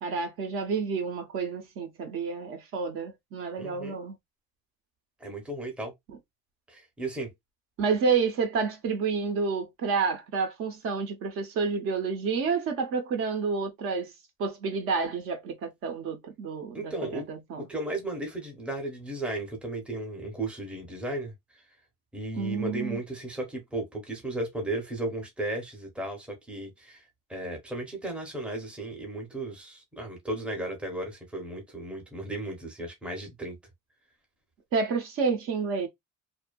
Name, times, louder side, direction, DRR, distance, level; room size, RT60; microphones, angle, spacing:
voice 1, 0.0-4.2 7.8-14.1 14.4-17.7 22.4-23.0 34.7-35.9, right 5 dB, 50° right, 0.6 m, -29 dB
voice 2, 3.6-4.0 5.2-5.9 6.7-7.3 16.7-17.3 17.7-21.3 22.1-27.0 27.3-33.6, right 2 dB, 5° right, 0.7 m, -35 dB
2.6 x 2.2 x 2.2 m
cardioid pair, 160°, 29 cm